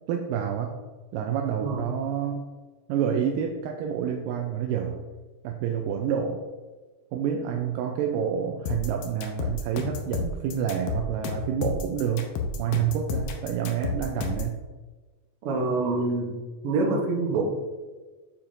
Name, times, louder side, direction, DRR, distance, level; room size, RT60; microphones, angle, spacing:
voice 1, 0.1-0.8 1.1-2.4 2.9-5.0 5.4-6.4 7.1-12.3 12.6-14.6, right 8 dB, 90° right, 2 dB, 2.2 m, -28 dB
sound 1, 8.7-14.5, left 4 dB, 85° left, 2.4 m, -31 dB
voice 2, 15.4-16.4 16.6-17.4, right 3 dB, 70° right, 0 dB, 1.4 m, -26 dB
7.3 x 7.0 x 2.5 m, 1.3 s
omnidirectional pair, 3.8 m